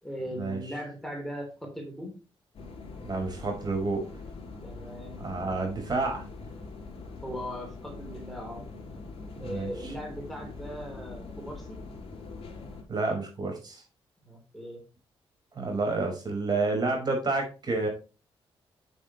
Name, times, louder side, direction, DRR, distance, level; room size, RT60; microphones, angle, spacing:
voice 1, 0.0-2.2 4.6-5.2 7.2-8.6 9.4-11.8 14.2-14.8, equal, ahead, 0 dB, 3.4 m, -39 dB
sound 1, 2.5-12.8, left 3 dB, 70° left, 3.8 m, -43 dB
voice 2, 3.0-4.0 5.2-6.2 9.4-9.9 12.9-13.8 15.5-17.9, right 3 dB, 40° right, 3 dB, 5.1 m, -29 dB
8.5 x 8.5 x 3.1 m, 0.31 s
cardioid pair, 100°, 10 cm